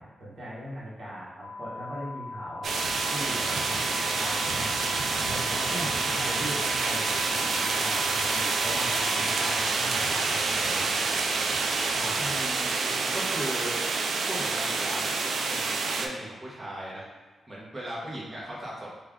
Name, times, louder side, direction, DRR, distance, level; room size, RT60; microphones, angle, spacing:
voice 1, 0.0-4.7 5.2-11.1 11.9-12.5, equal, 45° right, -9 dB, 1.4 m, -40 dB
sound 1, 1.4-9.6, left 3 dB, 65° left, 0.3 m, -40 dB
sound 2, 2.6-16.1, right 4 dB, 70° right, 0.3 m, -27 dB
voice 2, 5.7-6.2 12.2-13.8 14.3-17.0 17.5-18.9, right 1 dB, 20° right, -6 dB, 1.0 m, -38 dB
3.3 x 2.4 x 3.7 m, 1.4 s
cardioid pair, 110°, 0 cm